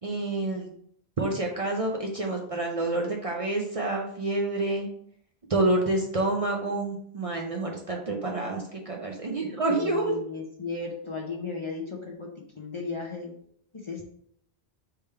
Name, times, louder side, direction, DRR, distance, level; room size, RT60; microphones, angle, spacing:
voice 1, 0.0-0.7 1.2-4.9 5.5-10.2, right 2 dB, 40° right, 0 dB, 0.6 m, -28 dB
voice 2, 9.7-12.3 12.6-13.3 13.7-14.0, left 4 dB, 35° left, -1 dB, 0.6 m, -35 dB
3.5 x 3.4 x 4.3 m, 0.66 s
omnidirectional pair, 1.0 m